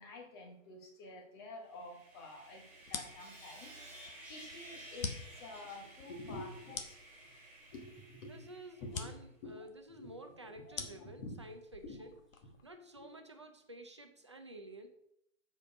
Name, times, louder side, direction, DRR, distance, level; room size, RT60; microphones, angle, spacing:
voice 1, 0.0-2.6 2.9-3.7 4.3-7.3 7.7-9.1 9.4-9.6 9.9-10.1 10.6-11.4 11.8-12.0 13.0-13.1, left 2 dB, 20° left, 3 dB, 1.0 m, -49 dB
Sawing, 1.7-9.1, right 1 dB, 5° right, 1.3 m, -54 dB
sound 1, 2.8-12.7, left 5 dB, 80° left, 1.3 m, -47 dB
voice 2, 8.2-12.1 12.6-14.9, right 1 dB, 25° right, 5 dB, 0.4 m, -51 dB
7.3 x 5.3 x 5.2 m, 0.76 s
hypercardioid pair, 165°, 40 cm